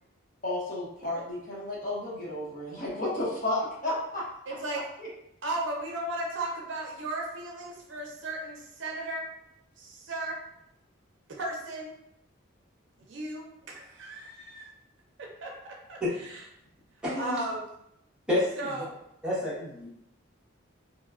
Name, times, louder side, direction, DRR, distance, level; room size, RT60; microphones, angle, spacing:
voice 1, 0.4-4.3 5.0-5.1, left 1 dB, 40° left, -7 dB, 0.9 m, -32 dB
voice 2, 4.5-4.8 5.4-9.3 9.8-10.4 11.4-11.9 13.0-14.7 15.2-16.4 17.2-17.7 18.6-18.9, right 2 dB, 60° right, -1 dB, 0.5 m, -36 dB
voice 3, 17.0-17.4 18.3-18.8 19.2-19.9, left 1 dB, 5° right, -9 dB, 0.8 m, -29 dB
2.9 x 2.2 x 2.3 m, 0.77 s
head